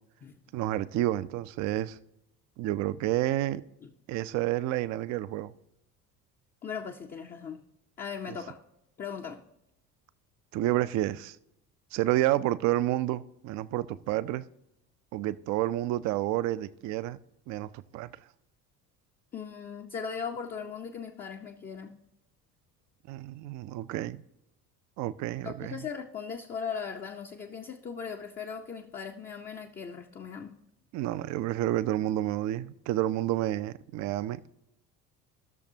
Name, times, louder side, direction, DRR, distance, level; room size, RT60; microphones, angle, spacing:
voice 1, 0.5-2.0 2.6-3.6 4.1-5.5 10.5-11.4 11.9-14.5 15.1-17.2 17.5-18.1 23.1-24.2 25.0-25.9 30.9-34.4, right 14 dB, 40° right, 0.5 m, -29 dB
voice 2, 6.6-7.6 8.0-8.6 9.0-9.4 19.3-22.0 25.4-30.6, left 6 dB, 20° left, 0.6 m, -38 dB
15.5 x 6.6 x 2.7 m
figure-of-eight pair, 55°, 47 cm